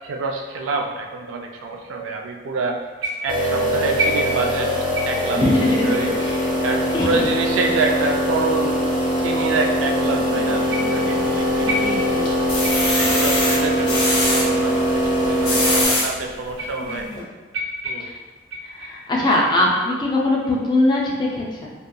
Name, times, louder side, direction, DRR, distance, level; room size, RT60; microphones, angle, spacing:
voice 1, 0.0-2.8 3.2-4.7 5.0-6.3 6.6-8.8 9.2-12.1 13.0-17.1 17.8-18.1, right 3 dB, 90° right, 2 dB, 0.4 m, -27 dB
sound 1, 3.0-3.5 4.0-4.6 4.9-5.3 5.9-6.1 6.9-7.0 7.9-8.0 8.8-8.9 10.7-11.1 11.7-12.3 12.6-13.0 13.6-13.8 14.6-14.7 15.5-15.6 16.5-17.2 17.5-19.1 19.5-19.9 20.4-20.8, equal, 70° right, 0.8 m, -30 dB
sound 2, 3.3-15.9, equal, 20° right, 0.6 m, -22 dB
voice 2, 5.3-6.4 6.9-7.2 10.1-11.2 11.6-12.3 16.8-17.2 18.0-18.1 18.6-21.7, left 1 dB, 20° left, -3 dB, 0.3 m, -23 dB
sound 3, 11.2-11.8 12.3-14.4 15.2-16.1 16.7-16.8 17.1-17.2, left 1 dB, 55° left, 0.7 m, -22 dB
2.8 x 2.3 x 2.2 m, 1.3 s
head